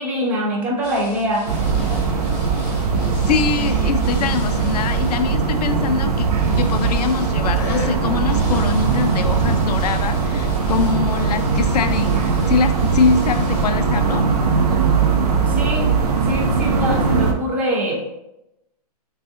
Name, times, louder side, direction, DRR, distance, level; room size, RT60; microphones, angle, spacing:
voice 1, 0.0-1.5 15.5-15.9 16.2-18.1, equal, 10° right, -2 dB, 0.4 m, -23 dB
sound 1, 0.8-14.2, left 4 dB, 30° left, 0.8 m, -39 dB
sound 2, 1.5-17.3, right 5 dB, 70° right, 0.7 m, -20 dB
voice 2, 3.2-14.2, left 5 dB, 75° left, 9 dB, 0.5 m, -23 dB
5.4 x 2.3 x 2.8 m, 0.89 s
hypercardioid pair, 160°, 21 cm